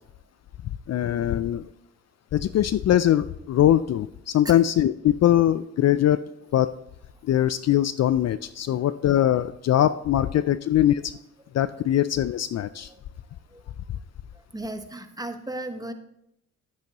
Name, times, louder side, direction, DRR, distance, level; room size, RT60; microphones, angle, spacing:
voice 1, 0.9-1.7 2.3-6.2 6.5-6.7 7.2-11.1 11.5-12.9, left 11 dB, 50° left, 14 dB, 0.4 m, -22 dB
voice 2, 14.5-15.9, right 1 dB, 10° right, 7 dB, 1.3 m, -35 dB
11.5 x 9.4 x 3.0 m, 0.79 s
supercardioid pair, 55°, 33 cm